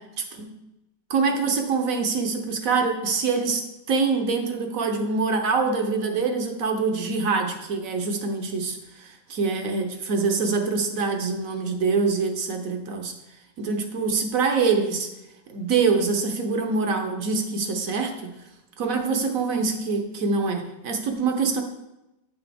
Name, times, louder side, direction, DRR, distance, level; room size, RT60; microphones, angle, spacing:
voice 1, 1.1-3.6 3.9-13.1 13.6-15.1 15.5-18.3 18.8-21.6, right 4 dB, 60° right, 4 dB, 1.1 m, -25 dB
9.1 x 5.9 x 3.4 m, 0.93 s
omnidirectional pair, 1.9 m